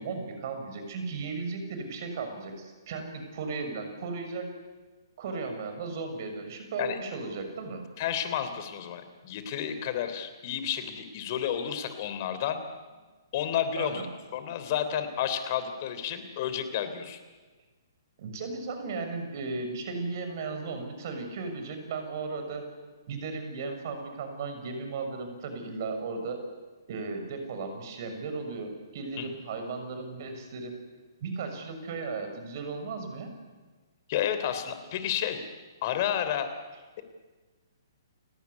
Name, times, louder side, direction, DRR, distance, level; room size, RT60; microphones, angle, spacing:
voice 1, 0.0-4.5 5.2-7.8 13.8-14.0 18.2-22.6 23.1-26.4 26.9-30.8 31.2-33.3, right 4 dB, 50° right, 6 dB, 6.5 m, -36 dB
voice 2, 8.0-12.6 13.3-14.1 14.3-17.2 29.2-29.3 34.1-35.4 35.8-36.5, left 9 dB, 45° left, 10 dB, 3.3 m, -31 dB
30.0 x 18.0 x 9.7 m, 1.3 s
figure-of-eight pair, 130°, 2 cm